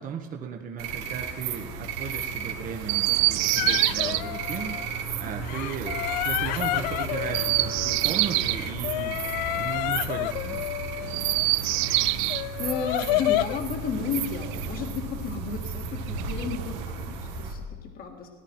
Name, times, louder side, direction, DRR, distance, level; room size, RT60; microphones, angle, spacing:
voice 1, 0.0-4.8 5.2-10.7, right 6 dB, 40° right, 2 dB, 1.4 m, -36 dB
sound 1, 0.8-17.5, right 5 dB, 80° right, 2.1 m, -34 dB
Chirp tweet, 2.8-4.2 7.2-8.6 11.0-12.5 13.9-15.0 16.0-17.0, right 20 dB, 65° right, 0.5 m, -26 dB
sound 2, 3.6-5.0 5.4-8.1 8.4-11.4 11.9-13.6, left 16 dB, 85° left, 0.4 m, -30 dB
voice 2, 11.8-12.2 12.6-18.3, left 6 dB, 45° left, 3 dB, 2.0 m, -33 dB
19.0 x 10.5 x 4.5 m, 1.5 s
supercardioid pair, 120°, 21 cm